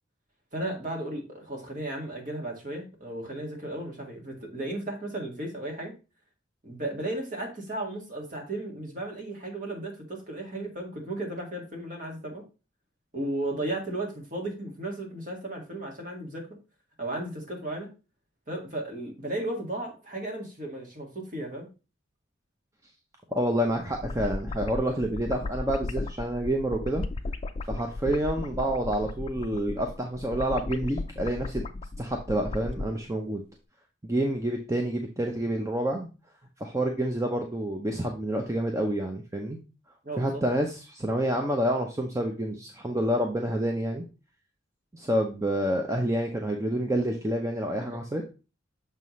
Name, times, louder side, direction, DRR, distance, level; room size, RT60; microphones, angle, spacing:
voice 1, 0.5-5.9 6.6-12.4 13.1-16.5 17.0-17.9 18.5-21.7 40.0-40.4, right 1 dB, 40° right, 1 dB, 1.8 m, -35 dB
voice 2, 23.3-27.0 27.7-31.6 32.0-33.4 34.0-36.1 36.6-39.6 40.2-44.0 44.9-48.2, right 1 dB, 15° right, 3 dB, 0.6 m, -28 dB
sound 1, 23.7-32.9, left 2 dB, 30° left, 0.4 m, -35 dB
6.7 x 5.5 x 3.1 m, 0.31 s
head